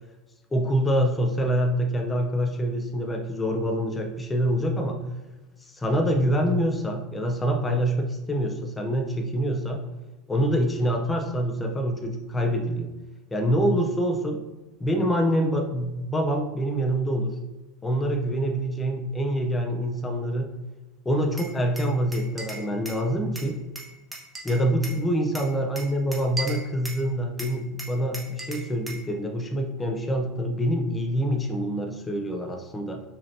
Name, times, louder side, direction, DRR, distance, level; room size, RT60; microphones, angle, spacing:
voice 1, 0.5-5.1 5.7-9.9 10.3-12.9 13.3-14.4 14.8-17.4 17.8-20.5 21.0-23.6 24.4-33.0, equal, 15° left, 3 dB, 0.6 m, -25 dB
Glass, 21.4-23.0 23.4-25.0 25.4-27.1 27.4-29.1, right 2 dB, 15° right, 1.0 m, -38 dB
5.0 x 2.7 x 2.7 m, 1.1 s
hypercardioid pair, 80°, 0 cm